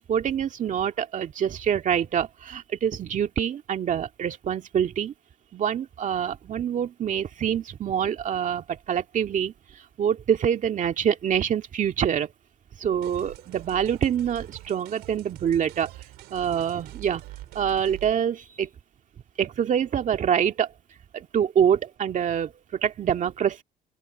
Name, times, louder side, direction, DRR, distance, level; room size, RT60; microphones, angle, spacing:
voice 1, 0.1-5.1 5.5-12.3 12.8-15.9 16.3-17.2 17.5-18.7 19.4-20.7 21.1-23.6, right 8 dB, 50° right, 2.0 m, -26 dB
sound 1, 13.0-18.2, right 17 dB, 90° right, 5.2 m, -44 dB
open air
cardioid pair, 110°, 17 cm